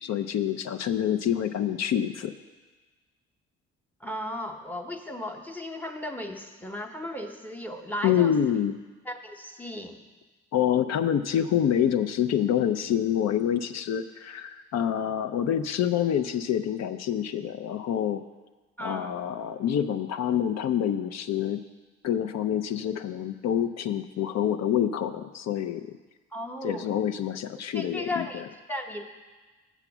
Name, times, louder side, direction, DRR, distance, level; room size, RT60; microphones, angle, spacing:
voice 1, 0.0-2.3 8.0-8.8 10.5-18.2 18.8-21.6 22.0-26.0 26.6-28.4, left 9 dB, 60° left, 9 dB, 0.5 m, -27 dB
voice 2, 4.0-8.6 9.0-10.0 18.8-19.2 26.3-27.0 27.7-29.0, left 1 dB, 5° left, 5 dB, 0.8 m, -36 dB
7.0 x 5.8 x 7.1 m, 1.3 s
cardioid pair, 90°, 30 cm